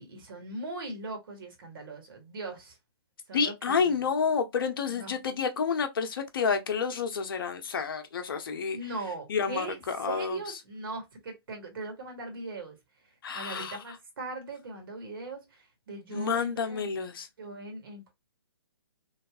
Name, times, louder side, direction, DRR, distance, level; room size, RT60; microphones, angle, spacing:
voice 1, 0.0-2.8 3.3-3.8 4.9-5.1 8.7-9.8 10.0-12.8 13.0-16.9 17.4-18.1, right 2 dB, 55° right, 1.3 m, -40 dB
voice 2, 3.3-8.8 9.3-10.6 13.2-14.0 16.1-17.3, left 5 dB, 55° left, 0.7 m, -29 dB
3.3 x 2.3 x 2.3 m
hypercardioid pair, 140°, 14 cm